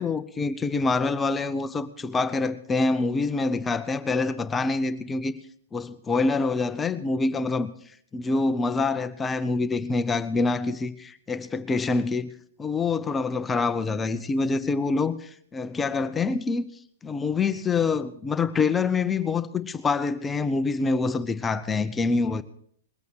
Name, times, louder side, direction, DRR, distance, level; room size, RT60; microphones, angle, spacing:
voice 1, 0.0-5.3 5.7-7.7 8.1-12.3 12.6-16.7 17.0-22.4, left 3 dB, 15° left, 0.8 m, -26 dB
20.5 x 8.2 x 6.4 m
hypercardioid pair, 120°, 0 cm